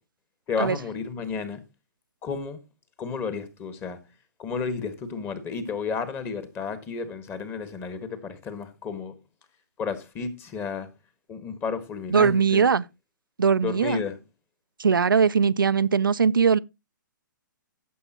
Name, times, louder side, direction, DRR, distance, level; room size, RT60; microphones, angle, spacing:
voice 1, 0.5-1.6 2.2-2.6 3.0-4.0 4.4-9.1 9.8-10.9 11.3-12.6 13.6-14.2, left 5 dB, 20° left, 1.5 m, -32 dB
voice 2, 12.1-12.8 13.4-14.0 14.8-16.6, right 6 dB, 85° right, 0.4 m, -20 dB
15.5 x 7.0 x 2.9 m
figure-of-eight pair, 130°, 11 cm